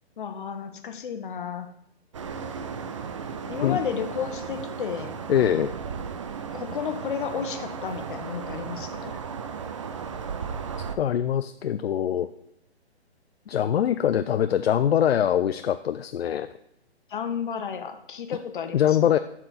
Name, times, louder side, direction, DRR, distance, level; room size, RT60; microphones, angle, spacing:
voice 1, 0.2-1.7 3.5-5.2 6.5-9.1 17.1-19.0, left 7 dB, 50° left, 7 dB, 1.1 m, -32 dB
sound 1, 2.1-11.0, right 6 dB, 30° right, 0.4 m, -35 dB
voice 2, 5.3-5.7 11.0-12.3 13.5-16.5 18.7-19.2, left 10 dB, 70° left, 11 dB, 0.5 m, -23 dB
12.0 x 4.4 x 4.0 m, 0.77 s
figure-of-eight pair, 140°, 33 cm